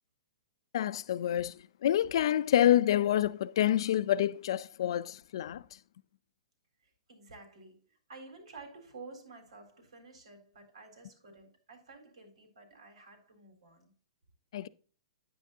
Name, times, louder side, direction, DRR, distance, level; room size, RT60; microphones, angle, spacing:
voice 1, 0.7-5.6 14.5-14.7, left 11 dB, 50° left, 0.4 m, -27 dB
voice 2, 6.8-13.9, right 3 dB, 90° right, 3.9 m, -52 dB
9.9 x 8.4 x 2.7 m
hypercardioid pair, 170°, 3 cm